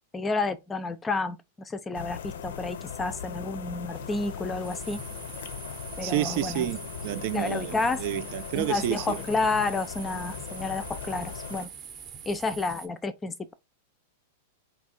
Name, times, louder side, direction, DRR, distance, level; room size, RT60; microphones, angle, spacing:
voice 1, 0.1-5.0 6.0-6.7 7.3-8.1 8.5-11.7 12.3-13.5, left 3 dB, 15° left, 0.4 m, -30 dB
sound 1, 1.9-11.7, left 8 dB, 80° left, 0.5 m, -39 dB
sound 2, 3.9-12.9, right 7 dB, 30° right, 0.7 m, -44 dB
voice 2, 6.0-9.2, right 13 dB, 55° right, 0.3 m, -30 dB
3.5 x 2.8 x 4.2 m
hypercardioid pair, 135°, 0 cm